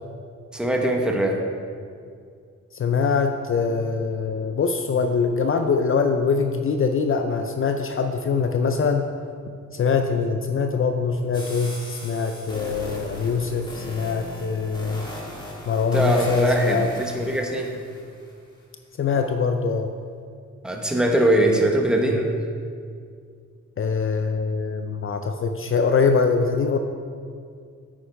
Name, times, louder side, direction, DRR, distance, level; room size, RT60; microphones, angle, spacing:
voice 1, 0.5-1.4 15.9-17.7 20.6-22.4, right 1 dB, 5° right, 1 dB, 1.1 m, -21 dB
voice 2, 2.7-9.1 9.7-15.1 15.7-16.9 19.0-19.9 23.8-26.8, left 5 dB, 45° left, 6 dB, 0.5 m, -23 dB
sound 1, 11.3-18.3, equal, 15° left, 1.9 m, -38 dB
9.0 x 8.6 x 3.5 m, 2.2 s
cardioid pair, 85°, 30 cm